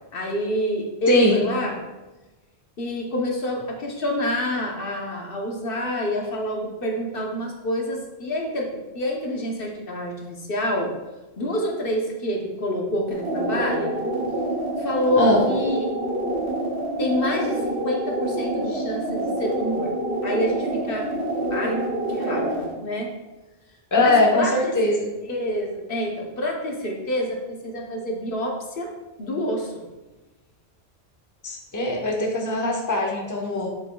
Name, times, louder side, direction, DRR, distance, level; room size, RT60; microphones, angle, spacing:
voice 1, 0.1-1.8 2.8-10.9 11.4-14.0 14.8-15.9 17.0-20.0 20.2-21.1 21.5-21.8 22.1-23.1 24.0-28.9 29.2-29.9, equal, 60° left, 0 dB, 1.1 m, -27 dB
voice 2, 1.1-1.4 15.2-15.4 21.5-21.8 23.9-25.1 31.4-33.7, left 1 dB, 20° left, 0 dB, 0.9 m, -21 dB
sound 1, 13.1-22.7, right 1 dB, 85° right, 1.6 m, -27 dB
7.5 x 6.5 x 2.3 m, 1.1 s
omnidirectional pair, 1.1 m